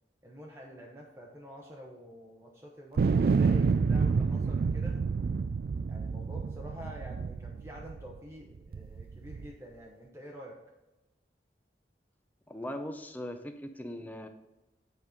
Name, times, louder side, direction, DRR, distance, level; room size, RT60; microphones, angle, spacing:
voice 1, 0.2-5.0 5.9-10.6, equal, 15° right, -2 dB, 0.9 m, -48 dB
sound 1, 3.0-8.2 8.7-9.5, right 5 dB, 55° right, 0.3 m, -28 dB
voice 2, 12.5-14.3, left 1 dB, 10° left, 7 dB, 0.6 m, -39 dB
8.5 x 5.4 x 5.1 m, 1.0 s
head